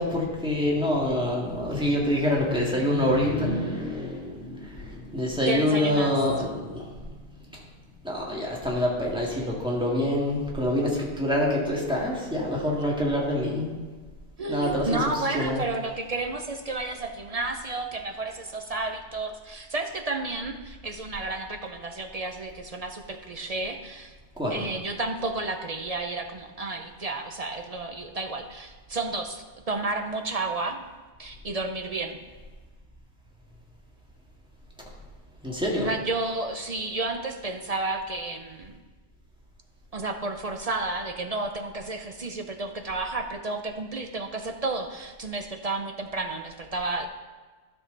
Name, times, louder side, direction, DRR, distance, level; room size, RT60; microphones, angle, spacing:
voice 1, 0.0-7.1 7.5-7.6 8.0-13.8 14.5-15.6 24.4-24.7 35.4-35.9, left 1 dB, 5° right, -4 dB, 1.9 m, -26 dB
voice 2, 5.5-6.2 14.4-24.1 24.5-30.8 31.2-32.2 35.8-38.8 39.9-47.1, right 3 dB, 45° right, 5 dB, 0.5 m, -31 dB
13.0 x 6.0 x 3.9 m, 1.3 s
omnidirectional pair, 1.2 m